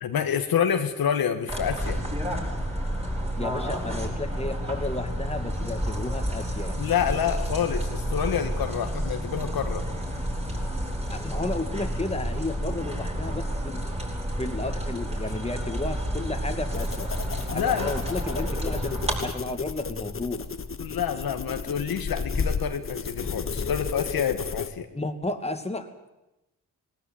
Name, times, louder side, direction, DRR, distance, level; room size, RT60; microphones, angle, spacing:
voice 1, 0.0-2.0 6.8-9.8 17.5-17.9 20.8-24.9, left 8 dB, 90° left, 7 dB, 1.8 m, -28 dB
sound 1, 1.5-19.2, equal, 15° right, 7.9 m, -30 dB
voice 2, 3.3-6.8 11.1-13.8 14.4-17.1 17.5-20.5 24.9-26.1, left 2 dB, 20° left, 6 dB, 2.5 m, -33 dB
sound 2, 16.7-24.7, left 5 dB, 35° left, 1.2 m, -33 dB
19.0 x 18.5 x 9.4 m, 0.95 s
cardioid pair, 65°, 35 cm